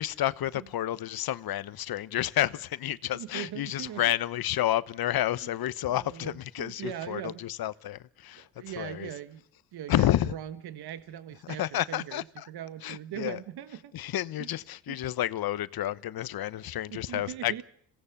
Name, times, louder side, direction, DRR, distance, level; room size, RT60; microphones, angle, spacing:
voice 1, 0.0-9.1 9.9-10.3 11.5-12.5 12.8-13.4 13.9-17.6, left 13 dB, 65° left, 1.1 m, -30 dB
voice 2, 3.1-4.0 5.9-7.4 8.4-9.4 9.7-11.6 11.9-13.9 14.4-14.5 14.9-15.0 16.9-17.6, right 11 dB, 75° right, 1.5 m, -40 dB
26.5 x 17.5 x 7.2 m
cardioid pair, 95°, 39 cm